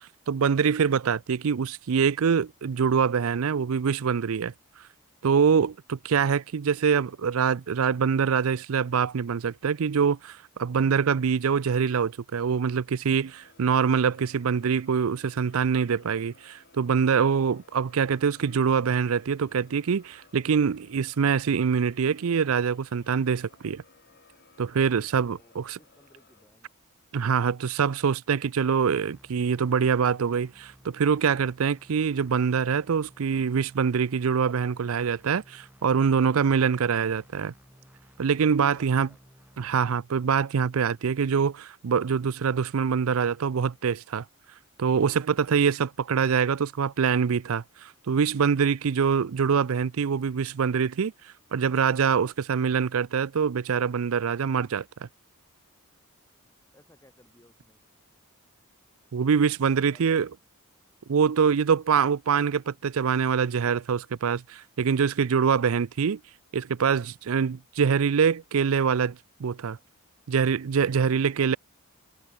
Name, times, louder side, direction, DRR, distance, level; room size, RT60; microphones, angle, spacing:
voice 1, 0.0-4.5 5.2-23.8 24.6-25.8 27.1-37.5 38.2-39.1 39.6-44.2 44.8-51.1 51.5-55.1 59.1-60.3 61.1-66.2 66.5-69.8 70.3-71.6, right 6 dB, 75° right, 0.5 m, -24 dB
sound 1, 13.3-26.4, left 3 dB, 50° left, 5.6 m, -59 dB
voice 2, 25.3-26.7 38.5-39.2 56.7-57.8 59.6-60.2, left 1 dB, 15° left, 4.3 m, -60 dB
sound 2, 28.7-39.7, equal, 10° right, 4.2 m, -56 dB
head